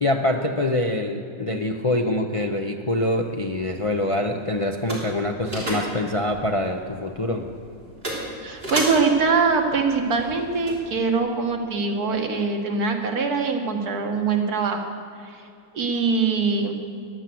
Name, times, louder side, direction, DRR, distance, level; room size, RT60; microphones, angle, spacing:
voice 1, 0.0-7.5, left 1 dB, 40° left, 3 dB, 0.5 m, -25 dB
sound 1, 3.2-11.2, right 1 dB, 35° right, 3.6 m, -35 dB
voice 2, 8.4-14.8 15.7-16.8, right 4 dB, 85° right, 3 dB, 1.8 m, -23 dB
12.5 x 10.5 x 7.6 m, 2.5 s
omnidirectional pair, 1.6 m